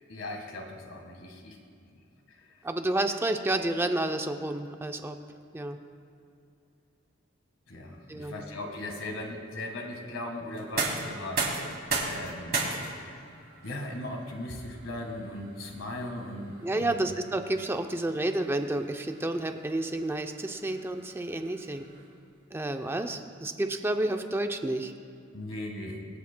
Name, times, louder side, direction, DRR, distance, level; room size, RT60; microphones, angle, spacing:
voice 1, 0.1-1.6 7.7-11.8 12.0-12.6 13.6-17.1 25.3-26.0, left 1 dB, 80° left, 3 dB, 1.6 m, -38 dB
voice 2, 2.6-5.2 5.5-5.8 8.1-8.4 16.6-21.8 22.5-24.9, right 1 dB, 10° right, 6 dB, 0.4 m, -30 dB
sound 1, 10.5-22.3, right 3 dB, 50° right, 2.5 m, -37 dB
25.0 x 8.4 x 2.2 m, 2.6 s
head